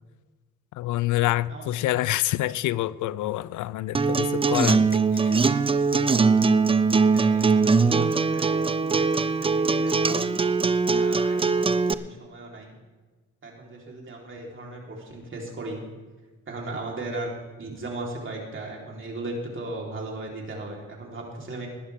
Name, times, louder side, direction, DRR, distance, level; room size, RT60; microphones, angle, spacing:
voice 1, 0.7-5.3 10.1-10.3, left 15 dB, 75° left, 0.5 m, -27 dB
Acoustic guitar, 3.9-11.9, right 4 dB, 20° right, 0.5 m, -21 dB
voice 2, 7.0-10.2 10.8-12.7 13.4-15.8 16.5-17.3 17.6-21.7, right 2 dB, 40° right, 4.0 m, -37 dB
19.5 x 12.0 x 3.6 m
cardioid pair, 90°, 30 cm